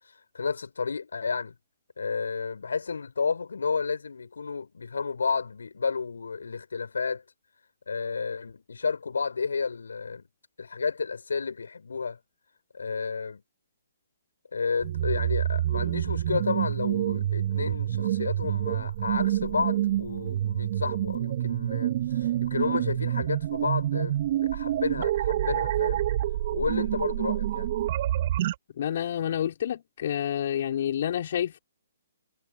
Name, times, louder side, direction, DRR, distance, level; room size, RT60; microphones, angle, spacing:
voice 1, 0.3-1.5 2.0-7.2 7.9-10.3 10.6-12.2 12.7-13.4 14.5-26.1 26.5-27.7, left 5 dB, 75° left, 5.5 m, -31 dB
sound 1, 14.8-28.5, right 12 dB, 45° right, 2.1 m, -27 dB
voice 2, 28.8-31.6, left 10 dB, 55° left, 4.3 m, -29 dB
figure-of-eight pair, 130°, 0 cm